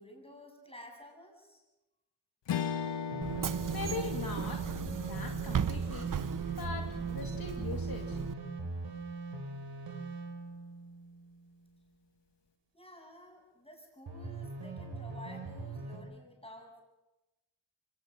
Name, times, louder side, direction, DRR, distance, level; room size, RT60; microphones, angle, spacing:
voice 1, 0.0-1.6 12.7-16.8, left 1 dB, 15° left, 2 dB, 7.5 m, -52 dB
Strum, 2.5-7.1, left 7 dB, 85° left, 1.2 m, -39 dB
sound 1, 3.1-11.7 14.1-16.0, right 2 dB, 85° right, 3.5 m, -41 dB
Bus / Engine, 3.2-8.3, right 8 dB, 50° right, 0.7 m, -36 dB
voice 2, 3.7-4.6 5.0-6.1 6.6-8.2, left 4 dB, 55° left, 1 dB, 2.4 m, -40 dB
24.0 x 18.0 x 6.5 m, 1.0 s
cardioid pair, 55°, 41 cm